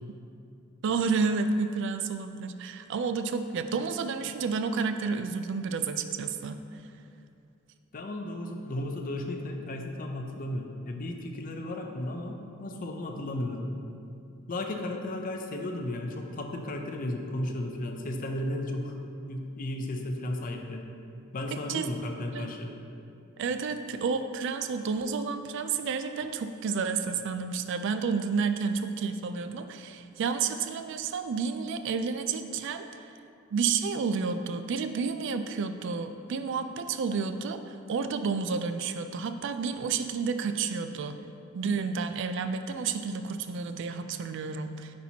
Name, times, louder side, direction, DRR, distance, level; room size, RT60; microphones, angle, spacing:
voice 1, 0.8-6.6 21.7-21.9 22.3-22.5 23.4-32.9 33.5-41.2 41.5-44.9, right 5 dB, 60° right, 9 dB, 0.3 m, -30 dB
voice 2, 7.9-13.7 14.5-19.0 19.3-20.8 21.3-22.7, left 1 dB, 40° left, 3 dB, 0.5 m, -34 dB
8.3 x 4.3 x 2.8 m, 2.5 s
head